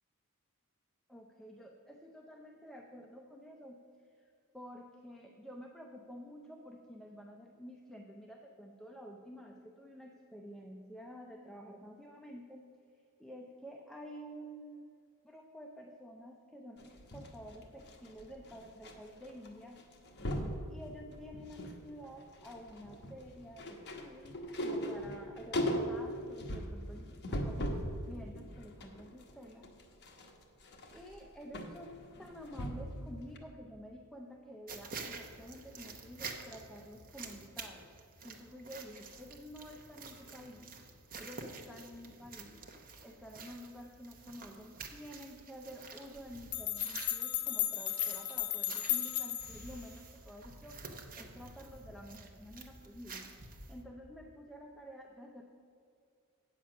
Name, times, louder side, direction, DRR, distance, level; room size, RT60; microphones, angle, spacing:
voice 1, 1.1-12.6 12.9-19.8 20.7-29.7 30.9-37.9 38.2-40.7 41.2-42.6 43.0-53.3 53.7-55.4, equal, ahead, 1 dB, 0.5 m, -50 dB
sound 1, 16.8-18.9 19.2-19.5 19.8-20.6 21.1-21.8 22.1-27.9 28.4-33.0 33.4-33.5, equal, 50° left, 1.1 m, -39 dB
sound 2, 34.7-53.8, right 4 dB, 40° right, 0.9 m, -49 dB
sound 3, 46.2-46.3 46.5-49.7, left 12 dB, 70° left, 0.6 m, -35 dB
8.4 x 7.5 x 5.9 m, 2.5 s
head